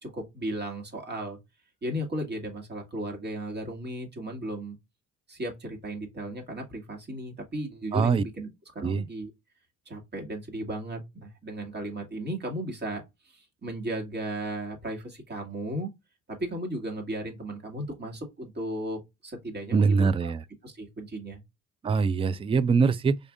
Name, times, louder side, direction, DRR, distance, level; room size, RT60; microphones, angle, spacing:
voice 1, 0.0-1.4 1.8-4.8 5.3-9.3 9.9-15.9 16.3-20.3 20.6-21.4, right 1 dB, 35° right, 2.0 m, -35 dB
voice 2, 7.9-8.2 8.8-9.0 19.7-20.4 21.8-23.2, right 5 dB, 20° right, 0.3 m, -23 dB
5.0 x 3.5 x 2.4 m
cardioid pair, 90°, 30 cm